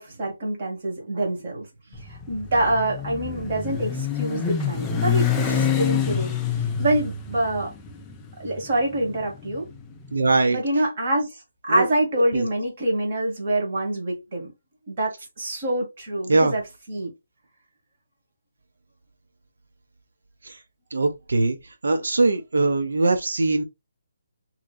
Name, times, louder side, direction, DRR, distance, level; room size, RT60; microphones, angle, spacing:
voice 1, 0.0-1.7 2.0-6.3 6.8-7.7 8.4-9.7 10.5-14.5 14.9-16.6 16.9-17.1, right 1 dB, 30° right, 1.6 m, -26 dB
Motorcycle, 1.9-10.1, left 7 dB, 10° left, 0.3 m, -27 dB
voice 2, 10.1-10.6 11.7-11.9 12.3-12.5 16.3-16.5 20.4-20.6 20.9-21.6 21.8-23.6, right 3 dB, 80° right, 0.7 m, -21 dB
3.6 x 3.1 x 2.3 m
hypercardioid pair, 175°, 0 cm